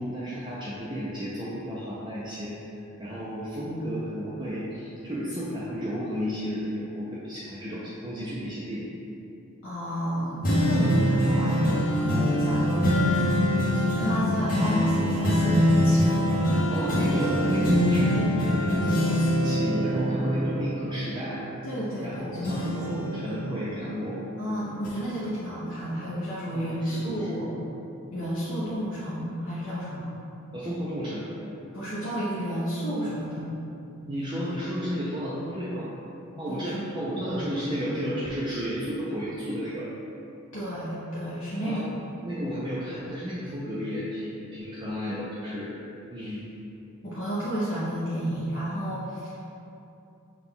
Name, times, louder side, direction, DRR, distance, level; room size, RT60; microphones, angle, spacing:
voice 1, 0.0-2.6 3.0-8.9 16.7-21.4 22.0-24.2 26.5-27.5 30.5-31.3 33.1-33.2 34.1-35.9 36.4-39.9 41.6-41.9 42.2-45.7 46.1-46.5, equal, 20° right, -8 dB, 0.4 m, -32 dB
voice 2, 9.6-13.2 13.5-16.7 21.6-23.3 24.4-27.5 28.1-30.2 31.7-33.5 34.0-34.2 36.3-37.0 40.5-41.9 47.0-49.4, equal, 65° left, -9 dB, 0.7 m, -31 dB
sound 1, 10.4-22.1 22.4-24.3 24.8-24.9, equal, 40° left, 0.9 m, -24 dB
5.9 x 2.3 x 3.6 m, 2.8 s
head